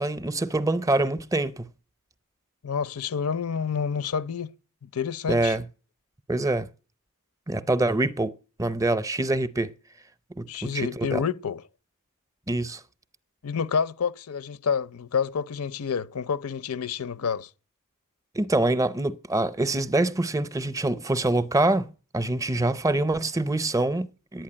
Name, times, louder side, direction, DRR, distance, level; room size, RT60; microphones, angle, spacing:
voice 1, 0.0-1.7 5.3-5.7 6.3-6.7 7.5-8.3 8.6-9.7 10.4-11.2 12.5-12.8 18.3-24.4, right 2 dB, 15° right, 0.6 m, -25 dB
voice 2, 2.6-4.5 4.8-5.6 10.5-11.6 13.4-17.5, left 6 dB, 85° left, 0.6 m, -28 dB
11.5 x 9.1 x 8.7 m
head